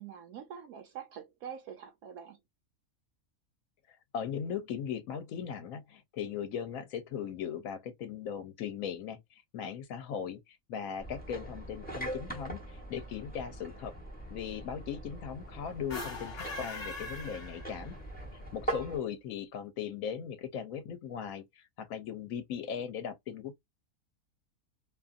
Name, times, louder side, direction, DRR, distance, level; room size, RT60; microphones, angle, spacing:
voice 1, 0.0-2.4, right 8 dB, 80° right, 1.0 m, -45 dB
voice 2, 3.9-13.9 14.3-17.9 18.3-23.6, left 8 dB, 75° left, 1.0 m, -38 dB
sound 1, 11.0-19.0, right 1 dB, 5° left, 0.8 m, -42 dB
sound 2, 15.8-18.1, left 2 dB, 45° left, 1.1 m, -41 dB
2.7 x 2.5 x 2.4 m
omnidirectional pair, 1.5 m